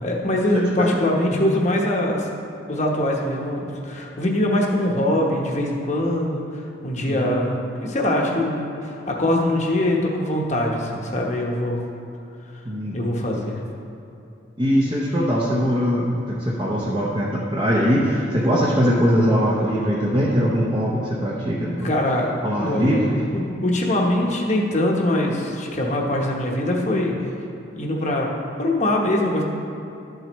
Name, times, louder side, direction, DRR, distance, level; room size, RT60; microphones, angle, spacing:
voice 1, 0.0-2.3 2.7-11.8 12.9-13.6 21.8-22.3 22.6-23.0 23.3-27.1 27.7-28.3 28.6-29.4, left 1 dB, 35° left, -1 dB, 1.0 m, -23 dB
voice 2, 0.5-1.0 1.3-1.4 7.1-7.2 12.6-13.3 14.6-21.9 22.4-23.2, equal, 20° right, -5 dB, 0.8 m, -21 dB
12.0 x 7.7 x 3.1 m, 2.8 s
head